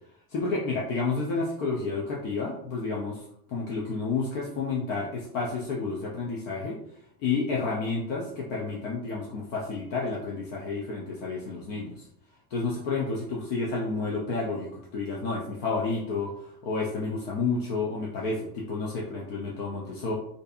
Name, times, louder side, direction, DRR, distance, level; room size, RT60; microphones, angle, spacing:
voice 1, 0.3-3.2 3.5-6.8 7.2-12.1 12.5-16.3 16.6-20.1, left 4 dB, 55° left, -3 dB, 0.5 m, -30 dB
2.6 x 2.5 x 2.3 m, 0.73 s
cardioid pair, 175°, 49 cm